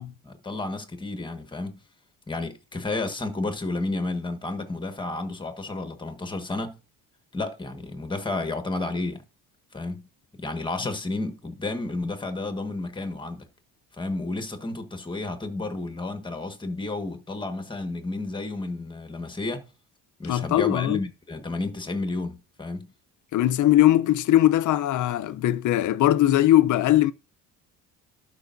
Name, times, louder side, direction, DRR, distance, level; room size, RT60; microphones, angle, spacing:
voice 1, 0.2-1.7 2.3-6.8 7.3-9.2 9.7-10.1 10.4-13.4 13.9-19.7 20.2-22.9, left 2 dB, 15° left, 1.4 m, -31 dB
voice 2, 20.3-21.0 23.3-27.1, left 13 dB, 55° left, 0.7 m, -20 dB
12.0 x 5.4 x 2.6 m
cardioid pair, 125°, 36 cm